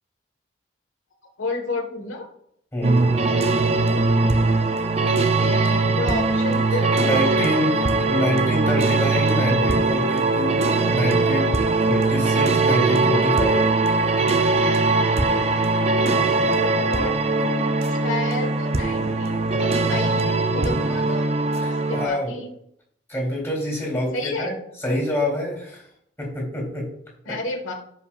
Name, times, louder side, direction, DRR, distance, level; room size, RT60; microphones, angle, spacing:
voice 1, 1.4-2.3 5.1-7.2 16.5-21.3 21.9-22.5 24.1-24.6 27.2-27.7, left 2 dB, 90° left, 1 dB, 1.6 m, -31 dB
voice 2, 2.7-3.2 6.7-13.7 21.6-22.4 23.1-24.5 24.8-25.8 26.2-26.9 27.3-27.4, left 1 dB, 10° left, -2 dB, 3.4 m, -26 dB
sound 1, 2.8-22.1, right 3 dB, 35° right, 0.5 m, -21 dB
15.5 x 5.6 x 2.5 m, 0.72 s
head